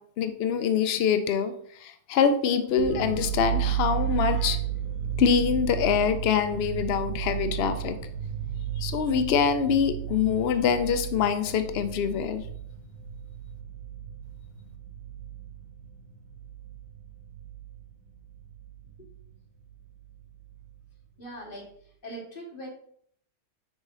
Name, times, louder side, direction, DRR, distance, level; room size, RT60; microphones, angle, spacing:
voice 1, 0.2-4.6 5.2-8.0 8.8-12.4, left 7 dB, 80° left, 9 dB, 0.5 m, -25 dB
sound 1, 2.8-17.9 18.1-19.3 19.6-19.7 20.0-20.7, right 10 dB, 80° right, 1.8 m, -33 dB
voice 2, 21.2-21.7 22.0-22.7, right 1 dB, 35° left, -2 dB, 2.1 m, -40 dB
6.3 x 3.7 x 5.3 m, 0.64 s
omnidirectional pair, 1.7 m